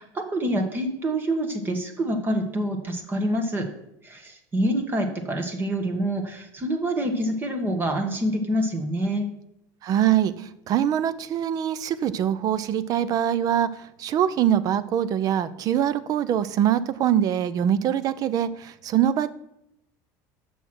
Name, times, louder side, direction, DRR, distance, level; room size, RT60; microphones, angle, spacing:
voice 1, 0.0-3.7 4.0-9.3, right 1 dB, 25° right, 5 dB, 1.4 m, -26 dB
voice 2, 9.8-19.3, right 10 dB, 45° right, 16 dB, 0.6 m, -23 dB
6.9 x 6.2 x 6.2 m, 0.80 s
supercardioid pair, 130°, 9 cm